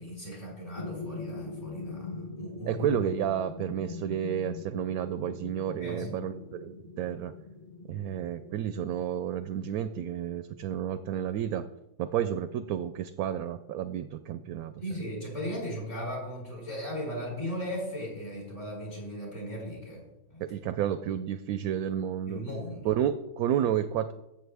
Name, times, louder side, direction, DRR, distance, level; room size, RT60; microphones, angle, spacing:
voice 1, 0.0-2.9 5.8-6.1 14.8-20.0 20.3-20.4 22.3-22.9, equal, 50° left, -4 dB, 4.8 m, -37 dB
sound 1, 0.8-9.8, left 3 dB, 25° left, 1.0 m, -42 dB
voice 2, 2.7-7.3 7.9-11.6 12.0-15.0 20.4-22.4 22.8-24.1, right 10 dB, 75° right, 12 dB, 1.0 m, -31 dB
14.5 x 7.3 x 3.4 m, 0.94 s
omnidirectional pair, 1.7 m